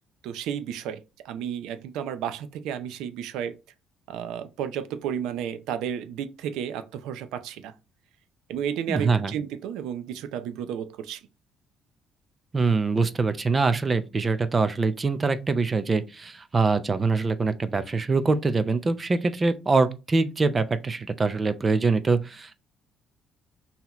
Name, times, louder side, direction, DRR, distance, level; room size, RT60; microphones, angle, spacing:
voice 1, 0.2-3.5 4.1-7.7 8.5-11.2, right 9 dB, 85° right, 0.5 m, -32 dB
voice 2, 8.9-9.3 12.5-22.5, right 4 dB, 20° right, 0.4 m, -24 dB
5.8 x 2.8 x 2.9 m
cardioid pair, 155°, 0 cm